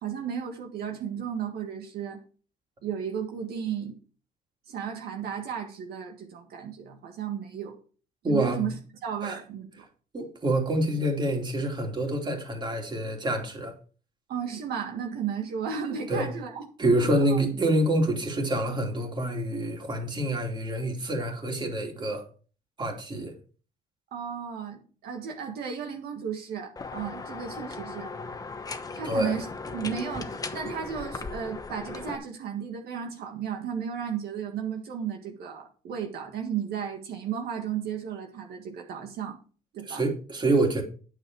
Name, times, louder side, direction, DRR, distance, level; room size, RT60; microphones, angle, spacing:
voice 1, 0.0-2.2 2.8-4.0 4.7-7.8 8.2-8.7 9.0-9.8 14.3-16.6 16.9-17.4 24.1-28.1 28.9-29.4 29.7-39.4 39.7-40.0, right 7 dB, 70° right, 1.7 m, -34 dB
voice 2, 8.2-8.6 9.2-9.4 10.1-13.7 16.1-16.3 16.8-22.2 22.8-23.3 29.0-29.4 39.8-40.8, right 1 dB, 25° right, 2.9 m, -27 dB
sound 1, 26.8-32.2, left 4 dB, 20° left, 1.0 m, -37 dB
9.1 x 7.6 x 4.7 m
cardioid pair, 110°, 17 cm